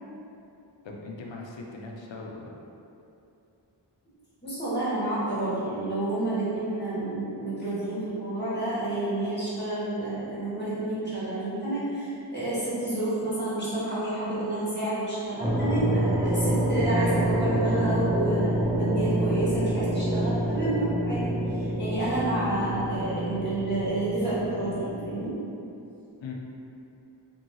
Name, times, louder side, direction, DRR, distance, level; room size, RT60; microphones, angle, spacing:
voice 1, 0.8-2.5 26.2-26.3, left 3 dB, 75° left, -1 dB, 0.5 m, -39 dB
voice 2, 4.4-21.2 21.5-25.3, right 2 dB, 20° left, -11 dB, 1.4 m, -29 dB
sound 1, 15.4-25.3, right 1 dB, 10° right, 0.4 m, -27 dB
2.8 x 2.7 x 2.7 m, 2.7 s
wide cardioid pair, 45°, 46 cm